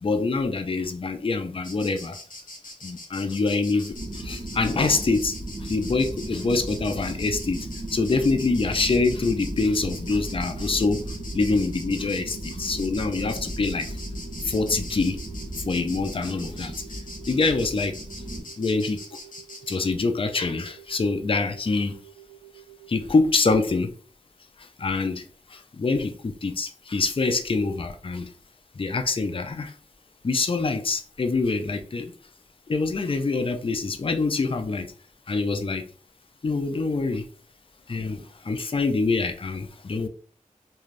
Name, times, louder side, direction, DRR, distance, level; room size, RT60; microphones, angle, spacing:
voice 1, 0.0-2.2 2.8-11.0 11.3-14.0 14.4-15.2 15.6-16.7 17.3-18.0 18.6-19.0 19.7-22.0 22.9-23.9 24.6-25.2 25.5-28.3 28.8-29.7 30.2-32.1 32.7-34.9 35.3-35.9 36.4-37.3 37.9-40.1, left 3 dB, 40° left, 7 dB, 0.4 m, -25 dB
Insect, 1.6-19.8, left 2 dB, 75° left, 0.8 m, -42 dB
sound 1, 3.9-18.4, right 1 dB, 70° right, 0.9 m, -36 dB
sound 2, 9.0-23.1, right 13 dB, 30° right, 0.5 m, -50 dB
2.5 x 2.3 x 3.2 m, 0.41 s
wide cardioid pair, 50°, 14 cm